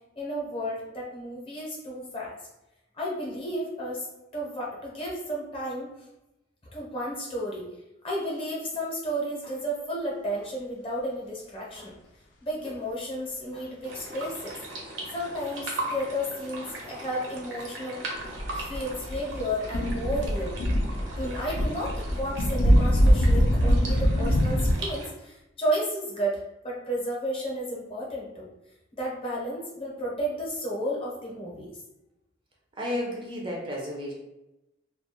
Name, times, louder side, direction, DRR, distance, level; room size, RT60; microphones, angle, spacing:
voice 1, 0.2-2.4 2.9-4.1 4.3-5.9 6.7-7.7 8.0-12.0 12.4-14.5 15.1-20.6 21.2-28.5 28.9-31.8, equal, 30° left, -4 dB, 0.7 m, -32 dB
sound 1, 13.8-25.1, right 2 dB, 75° right, 0.6 m, -39 dB
sound 2, 18.2-24.7, equal, 80° left, 0.4 m, -24 dB
voice 2, 32.8-34.1, left 1 dB, 25° right, -2 dB, 0.4 m, -32 dB
2.3 x 2.1 x 2.8 m, 0.94 s
head